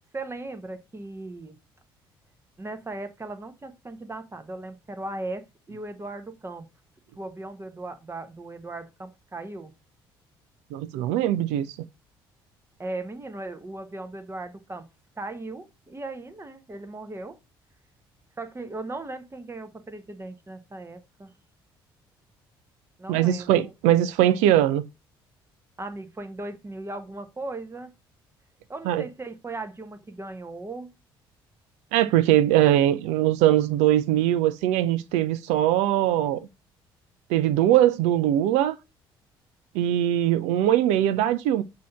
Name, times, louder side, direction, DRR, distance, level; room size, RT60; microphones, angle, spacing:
voice 1, 0.1-1.6 2.6-6.7 7.2-9.7 12.8-14.9 15.2-17.4 18.4-21.3 23.0-23.7 25.8-27.9 28.7-30.9, right 2 dB, 20° right, 1.1 m, -37 dB
voice 2, 10.7-11.7 23.1-24.8 28.9-29.0 31.9-36.5 37.3-38.8 39.7-41.6, right 12 dB, 70° right, 0.5 m, -21 dB
6.1 x 2.9 x 5.6 m
hypercardioid pair, 55°, 12 cm